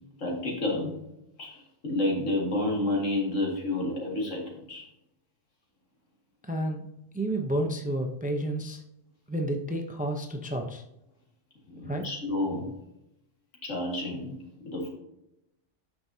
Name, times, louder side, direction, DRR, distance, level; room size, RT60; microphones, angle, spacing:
voice 1, 0.2-1.0 1.4-4.9 11.7-12.7 13.6-14.3 14.6-14.9, left 2 dB, 85° left, -1 dB, 2.2 m, -30 dB
voice 2, 6.5-6.8 7.1-8.8 9.3-10.8 11.8-12.0, right 1 dB, 10° right, 3 dB, 0.5 m, -30 dB
9.2 x 6.1 x 2.7 m, 0.85 s
omnidirectional pair, 1.3 m